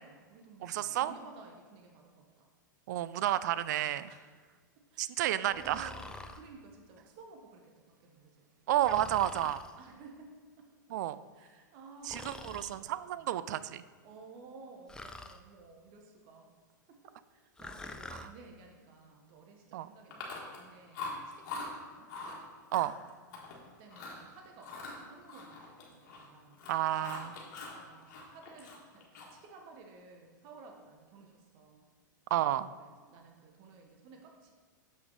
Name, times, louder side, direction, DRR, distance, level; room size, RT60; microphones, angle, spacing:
voice 1, 0.0-2.5 4.1-4.2 4.8-7.7 8.0-8.8 9.8-10.7 11.3-13.4 14.0-16.5 16.9-17.0 17.3-22.1 23.5-26.6 27.4-31.9 32.8-34.5, right 3 dB, 45° right, 2 dB, 1.1 m, -55 dB
voice 2, 0.6-1.1 2.9-4.1 5.0-5.9 8.7-9.6 10.9-11.2 12.0-13.8 19.7-19.9 22.7-22.9 26.7-27.3 32.3-32.7, right 13 dB, 60° right, 15 dB, 0.4 m, -31 dB
Breathing, 5.5-6.4 8.8-9.7 12.0-12.8 14.9-15.4 17.6-18.3, left 2 dB, 5° left, 0.4 m, -46 dB
Chewing mastication, 20.1-20.7 20.9-21.7 22.1-22.4 22.7-23.6 23.9-24.2 24.6-26.3 26.5-27.8 28.1-29.5, left 3 dB, 55° left, 1.8 m, -43 dB
7.0 x 5.8 x 4.0 m, 1.5 s
hypercardioid pair, 105°, 11 cm